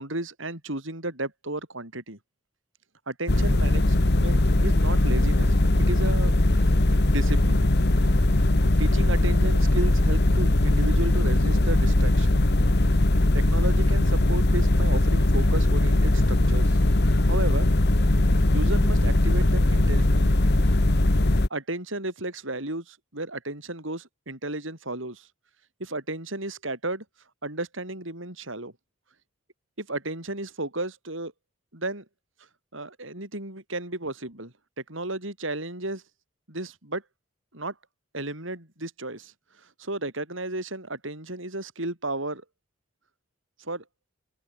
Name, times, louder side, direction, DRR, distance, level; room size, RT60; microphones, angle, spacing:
voice 1, 0.0-2.2 3.1-5.5 5.8-6.8 7.0-7.6 8.8-12.4 13.3-16.8 17.2-17.7 18.5-20.4 21.5-25.3 25.8-27.0 27.4-28.7 29.8-31.3 31.7-32.1 32.7-34.5 34.9-36.0 36.5-37.0 37.5-37.7 38.1-42.4 43.6-43.8, right 2 dB, 70° right, 7.1 m, -33 dB
sound 1, 3.3-21.5, left 1 dB, 55° left, 1.5 m, -20 dB
head